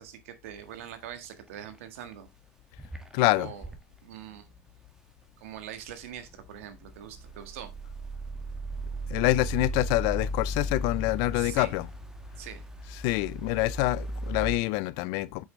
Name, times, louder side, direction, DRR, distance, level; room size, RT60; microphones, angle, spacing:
voice 1, 0.0-2.3 3.4-3.7 4.0-4.5 5.4-7.7 11.3-11.7 12.4-12.7, right 10 dB, 85° right, 1.6 m, -43 dB
sound 1, 0.6-0.8 1.1-1.8 2.1-2.2 2.8-3.8 5.9-14.6, equal, 10° right, 1.7 m, -36 dB
voice 2, 3.1-3.5 9.1-11.9 13.0-15.4, left 19 dB, 75° left, 0.6 m, -26 dB
8.2 x 6.3 x 3.2 m
supercardioid pair, 95°, 7 cm